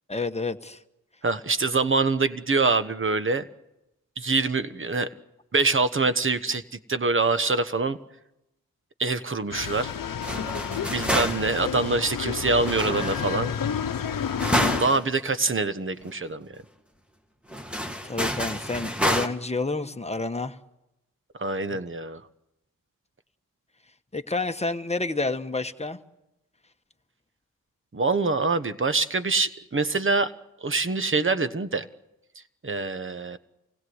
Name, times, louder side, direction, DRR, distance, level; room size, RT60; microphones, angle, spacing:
voice 1, 0.1-0.8 18.0-20.6 21.7-21.8 24.1-26.0, left 3 dB, 20° left, 1.2 m, -29 dB
voice 2, 1.2-3.4 4.2-5.1 5.5-6.6 6.9-8.0 9.0-9.9 10.9-13.5 14.8-16.5 21.4-22.2 27.9-30.3 30.6-31.9 32.6-33.4, right 3 dB, 35° right, 1.2 m, -25 dB
sound 1, 9.5-14.8, left 8 dB, 70° left, 0.9 m, -30 dB
sound 2, 10.2-11.7 12.6-13.6 14.4-15.1 15.5-15.6 16.0-16.1 17.5-19.3, equal, 5° right, 1.8 m, -28 dB
26.5 x 16.5 x 8.0 m
cardioid pair, 45°, 35 cm